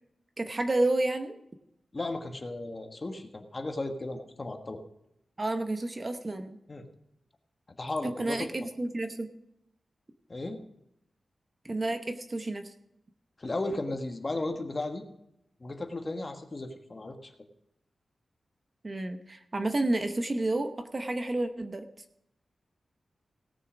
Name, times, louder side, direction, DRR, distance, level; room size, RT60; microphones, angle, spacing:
voice 1, 0.4-1.4 5.4-6.6 8.0-9.3 11.6-12.7 18.8-21.8, right 2 dB, 30° right, 7 dB, 0.9 m, -30 dB
voice 2, 1.9-4.8 6.7-6.9 7.8-8.7 10.3-10.6 13.4-15.0 15.6-17.3, left 2 dB, 30° left, 5 dB, 1.3 m, -35 dB
17.5 x 6.8 x 5.0 m, 0.81 s
wide cardioid pair, 140°, 0 cm